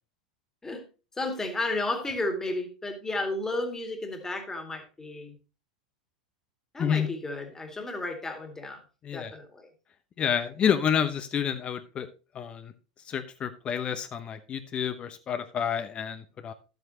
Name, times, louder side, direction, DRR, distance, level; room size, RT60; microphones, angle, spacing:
voice 1, 1.2-5.4 6.7-8.8 9.1-9.7, left 2 dB, 10° left, 5 dB, 2.2 m, -33 dB
voice 2, 10.2-12.1 12.3-12.7 13.1-16.5, left 8 dB, 30° left, 10 dB, 0.8 m, -29 dB
12.5 x 8.0 x 2.8 m, 0.32 s
figure-of-eight pair, 85°, 4 cm